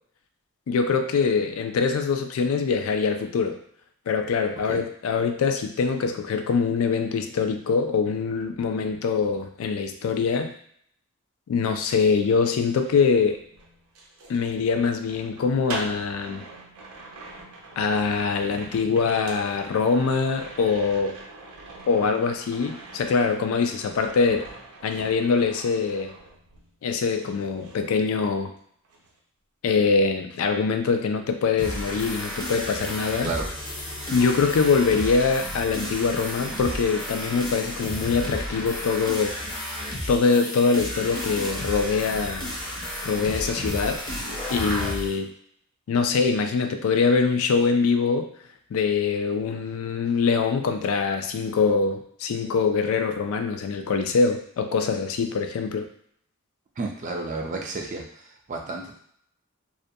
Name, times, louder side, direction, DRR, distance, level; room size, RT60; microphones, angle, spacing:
voice 1, 0.7-3.6 4.1-10.5 11.5-13.4 14.3-16.5 17.8-21.2 21.9-24.5 24.8-26.1 26.8-28.5 29.6-33.3 34.1-39.4 40.1-42.5 43.0-44.0 44.5-45.3 45.9-48.3 48.7-55.9, left 5 dB, 75° left, 6 dB, 0.3 m, -23 dB
sound 1, 12.7-26.8 27.1-28.6 28.8-29.2, right 2 dB, 90° right, 0.5 m, -43 dB
sound 2, 31.6-45.1, left 1 dB, 20° left, 0.5 m, -32 dB
voice 2, 56.8-59.0, right 3 dB, 35° right, 0 dB, 0.3 m, -32 dB
2.4 x 2.2 x 2.6 m, 0.66 s
head